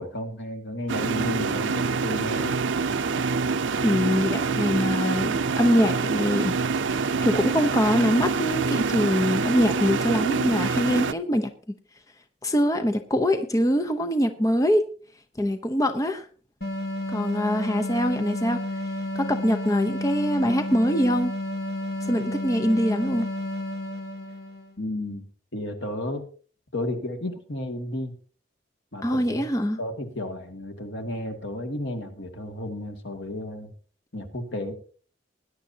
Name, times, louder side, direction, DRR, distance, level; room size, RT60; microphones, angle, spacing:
voice 1, 0.0-2.5 24.8-25.2 25.5-26.2 26.7-28.1 28.9-29.5 29.8-33.7 34.1-34.7, left 1 dB, 70° left, 4 dB, 2.3 m, -32 dB
sound 1, 0.9-11.1, right 4 dB, 80° right, 0.5 m, -26 dB
voice 2, 3.8-6.6 7.2-11.5 12.4-14.8 15.4-16.3 17.1-18.6 19.1-21.3 22.0-23.3 29.0-29.8, equal, 20° left, 6 dB, 0.8 m, -23 dB
sound 2, 16.6-24.7, left 1 dB, 55° left, 2.3 m, -31 dB
20.5 x 10.5 x 2.8 m, 0.39 s
head